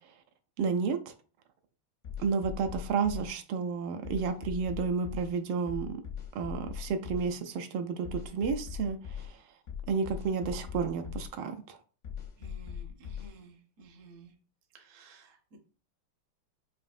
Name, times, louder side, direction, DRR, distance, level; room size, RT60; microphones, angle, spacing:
voice 1, 0.6-1.1 2.2-6.0 6.3-9.4 9.9-11.8, right 5 dB, 85° right, 1.4 m, -31 dB
sound 1, 2.0-3.3 4.0-5.3 5.7-7.3 8.0-9.3 9.7-11.3 12.0-13.3, left 8 dB, 65° left, 0.7 m, -40 dB
voice 2, 12.4-14.3 14.7-15.6, right 4 dB, 60° right, 0.9 m, -54 dB
5.2 x 2.6 x 2.5 m
omnidirectional pair, 2.3 m